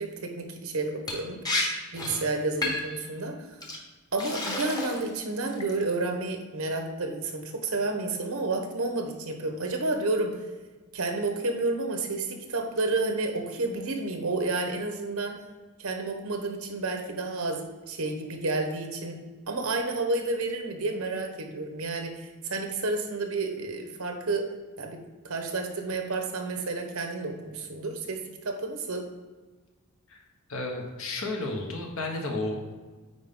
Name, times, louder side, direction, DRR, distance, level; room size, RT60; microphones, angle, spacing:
voice 1, 0.0-1.4 1.9-3.3 4.1-10.4 10.9-15.4 15.8-24.5 24.8-29.1, right 3 dB, 80° right, 4 dB, 1.1 m, -30 dB
Liquid, 1.1-1.2 1.4-1.7 2.0-2.2 2.6-3.0 3.6-3.8 4.2-5.1 5.5-5.9, left 2 dB, 20° left, 1.0 m, -30 dB
voice 2, 30.5-32.7, left 2 dB, 65° left, 1 dB, 1.4 m, -32 dB
9.3 x 4.3 x 3.8 m, 1.3 s
head